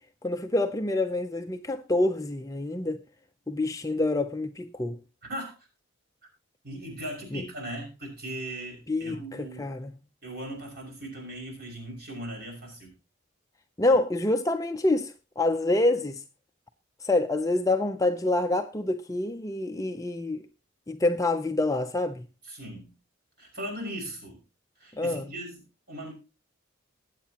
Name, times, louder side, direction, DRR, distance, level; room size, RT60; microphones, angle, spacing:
voice 1, 0.2-3.0 3.5-5.0 7.3-7.4 8.9-9.9 13.8-16.2 17.0-20.4 20.9-22.3 25.0-25.3, left 2 dB, 15° left, 0.6 m, -27 dB
voice 2, 6.6-9.7 10.2-12.9 13.9-14.0 22.4-22.9 23.4-24.4 24.8-26.1, right 1 dB, 50° right, 6.0 m, -38 dB
20.0 x 8.4 x 2.9 m
head